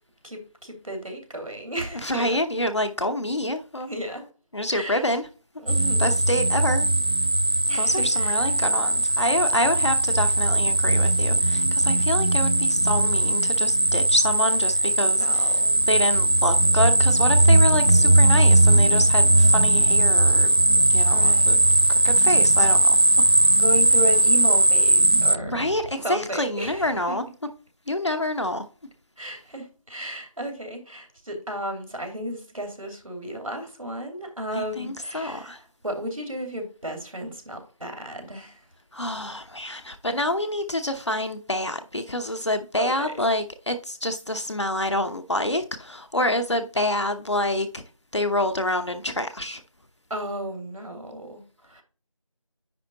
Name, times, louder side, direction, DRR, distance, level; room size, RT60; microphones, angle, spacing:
voice 1, 0.2-2.4 3.9-4.2 4.7-5.1 5.6-6.0 7.7-8.4 15.0-15.9 21.1-21.6 23.5-25.7 26.0-26.9 29.2-38.6 42.8-43.1 50.1-51.8, equal, 85° right, 2.9 m, -34 dB
voice 2, 2.0-3.9 4.5-5.2 6.0-6.9 7.7-15.6 15.9-20.5 20.9-21.6 21.9-23.0 25.5-27.2 27.9-28.6 34.5-35.6 38.9-47.8 48.1-49.6, left 1 dB, 60° left, 0.9 m, -27 dB
sound 1, 5.7-25.4, right 2 dB, 50° right, 0.4 m, -19 dB
sound 2, 14.7-20.9, left 1 dB, 85° left, 4.3 m, -49 dB
sound 3, 17.4-25.9, equal, 40° left, 0.4 m, -37 dB
10.0 x 3.7 x 4.1 m
figure-of-eight pair, 175°, 17 cm